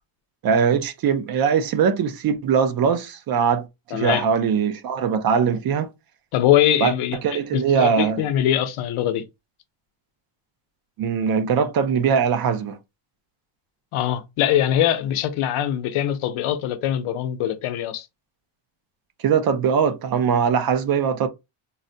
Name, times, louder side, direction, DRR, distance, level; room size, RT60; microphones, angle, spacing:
voice 1, 0.4-5.9 6.8-6.9 7.2-8.2 11.0-12.8 19.2-21.3, right 6 dB, 50° right, 0.5 m, -21 dB
voice 2, 3.9-4.2 6.3-9.2 13.9-18.1, left 11 dB, 90° left, 0.7 m, -22 dB
3.9 x 2.1 x 2.6 m
cardioid pair, 170°, 48 cm